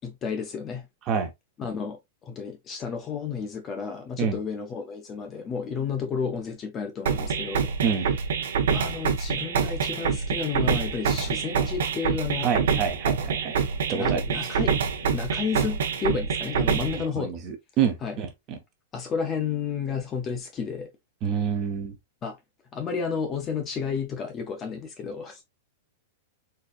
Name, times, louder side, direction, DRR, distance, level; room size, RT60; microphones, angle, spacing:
voice 1, 0.0-0.9 1.6-7.7 8.7-12.5 13.9-14.7 15.0-17.3 18.0-18.2 18.9-20.9 22.2-22.4 22.7-25.4, left 6 dB, 15° left, 0.4 m, -32 dB
sound 1, 7.1-17.1, right 6 dB, 75° right, 0.7 m, -26 dB
voice 2, 12.4-13.5 13.9-14.2 16.9-18.6 21.2-22.0, right 7 dB, 25° right, 0.6 m, -27 dB
4.0 x 2.7 x 2.4 m
supercardioid pair, 175°, 0 cm